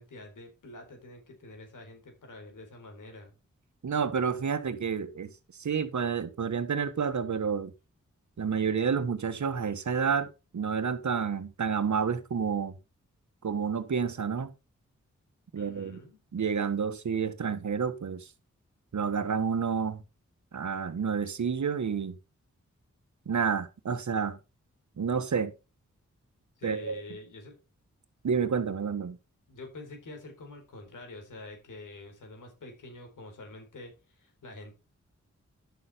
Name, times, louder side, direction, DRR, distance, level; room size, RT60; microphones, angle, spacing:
voice 1, 0.0-3.3 15.5-16.2 24.9-25.1 26.6-27.6 29.5-34.7, left 2 dB, 85° left, 4.1 m, -47 dB
voice 2, 3.8-5.3 5.6-7.7 8.4-10.3 10.5-12.7 13.4-14.5 15.5-16.0 16.3-18.3 18.9-20.0 20.5-22.2 23.2-24.4 25.0-25.5 26.6-27.0 28.2-29.2, right 6 dB, 70° right, 1.5 m, -29 dB
10.5 x 6.9 x 4.3 m
cardioid pair, 40°, 30 cm